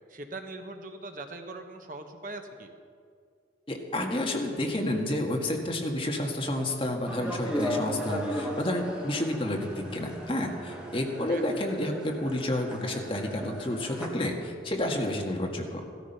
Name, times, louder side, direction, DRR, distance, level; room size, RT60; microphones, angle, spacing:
voice 1, 0.1-2.7 11.3-11.4, right 2 dB, 50° right, 5 dB, 1.2 m, -41 dB
voice 2, 3.7-15.8, left 1 dB, 30° left, 1 dB, 1.8 m, -30 dB
sound 1, 7.0-14.1, equal, 5° right, 2.0 m, -36 dB
16.5 x 13.5 x 5.7 m, 2.2 s
head